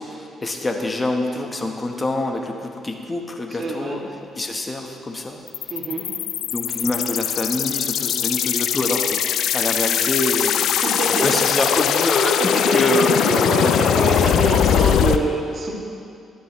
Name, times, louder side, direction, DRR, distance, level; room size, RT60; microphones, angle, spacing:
voice 1, 0.0-4.0 4.3-5.4 6.5-10.7 11.0-14.0 14.9-15.1, left 2 dB, 25° left, 3 dB, 1.1 m, -25 dB
voice 2, 3.6-4.0 5.7-6.1 10.6-11.3 12.0-12.1 12.4-12.8 13.3-15.7, right 2 dB, 45° right, -3 dB, 2.2 m, -25 dB
sound 1, 5.5-15.2, left 9 dB, 75° left, 0.4 m, -21 dB
13.0 x 11.5 x 3.1 m, 2.4 s
cardioid pair, 90°, 0 cm